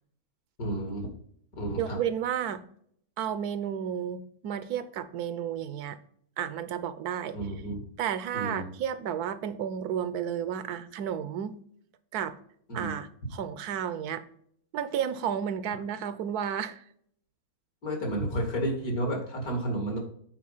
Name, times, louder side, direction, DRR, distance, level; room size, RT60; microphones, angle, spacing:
voice 1, 0.6-1.1 1.6-2.0 7.3-7.8 8.3-8.7 12.7-12.9 17.8-20.0, right 1 dB, 70° left, 2 dB, 2.8 m, -31 dB
voice 2, 1.8-2.6 3.2-6.0 6.4-7.4 8.0-11.6 12.1-12.4 12.7-14.3 14.7-16.8, right 9 dB, 80° right, 13 dB, 1.2 m, -32 dB
8.7 x 4.2 x 5.5 m, 0.65 s
omnidirectional pair, 1.6 m